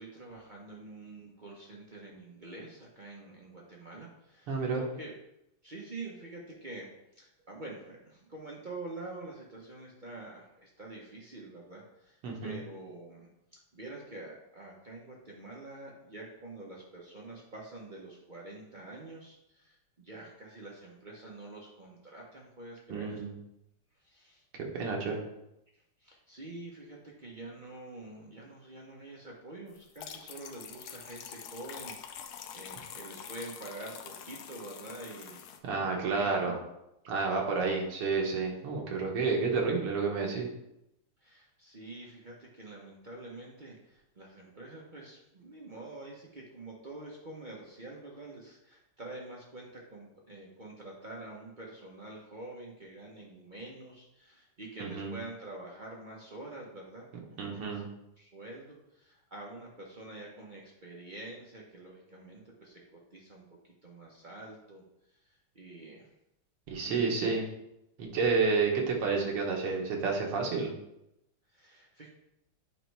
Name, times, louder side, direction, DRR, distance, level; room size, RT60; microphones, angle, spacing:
voice 1, 0.0-5.1 5.6-23.3 24.0-24.4 26.0-35.8 36.1-36.6 41.2-57.3 57.6-57.9 58.2-63.5 63.8-64.8 65.1-66.1 66.8-67.4 68.1-68.5 71.5-72.1, right 2 dB, 60° right, -3 dB, 0.5 m, -47 dB
voice 2, 4.5-4.8 12.2-12.6 22.9-23.3 24.5-25.2 35.6-36.6 37.1-40.5 54.8-55.1 57.4-57.9 66.7-67.5 68.0-70.7, right 4 dB, 80° right, 0 dB, 2.1 m, -30 dB
sound 1, 29.8-35.6, left 8 dB, 75° left, 0.9 m, -46 dB
8.7 x 3.1 x 4.6 m, 0.84 s
omnidirectional pair, 2.4 m